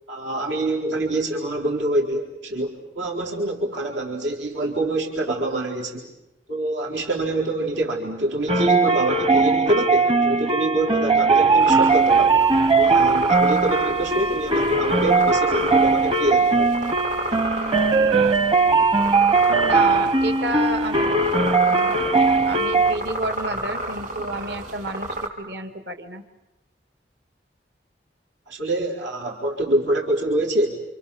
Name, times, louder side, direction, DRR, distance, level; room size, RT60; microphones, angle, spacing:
voice 1, 0.1-6.1 6.5-12.4 12.8-16.8 28.5-30.8, right 1 dB, 90° right, -1 dB, 4.3 m, -25 dB
Entertainer holdon-song, 8.5-22.9, right 3 dB, 30° right, 1.0 m, -19 dB
sound 1, 11.6-25.3, right 1 dB, 45° right, 4.2 m, -32 dB
voice 2, 19.5-22.0 22.4-26.2, right 2 dB, 65° right, 8 dB, 2.4 m, -31 dB
29.0 x 27.0 x 7.2 m, 0.93 s
head